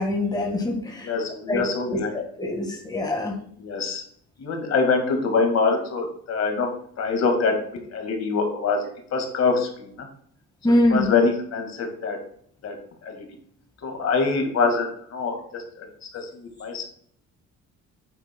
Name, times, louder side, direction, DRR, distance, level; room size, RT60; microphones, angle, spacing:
voice 1, 0.0-1.1 1.5-3.4 10.6-11.1, left 1 dB, 15° left, 1 dB, 1.7 m, -24 dB
voice 2, 1.0-2.1 3.6-4.0 4.4-6.7 7.0-7.6 7.9-8.8 9.1-10.1 10.9-12.2 12.6-12.7 13.0-13.2 13.8-15.9 16.1-16.9, left 4 dB, 60° left, 3 dB, 1.9 m, -24 dB
8.9 x 7.8 x 2.3 m, 0.62 s
cardioid pair, 90°, 30 cm